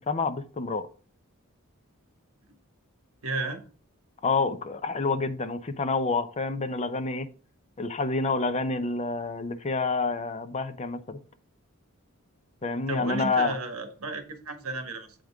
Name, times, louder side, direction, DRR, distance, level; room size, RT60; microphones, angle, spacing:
voice 1, 0.1-0.9 4.2-7.3 7.8-11.2 12.6-13.5, left 4 dB, 30° left, 10 dB, 0.6 m, -28 dB
voice 2, 3.2-3.6 12.9-15.1, right 3 dB, 80° right, 7 dB, 1.2 m, -33 dB
7.7 x 5.1 x 3.5 m, 0.41 s
head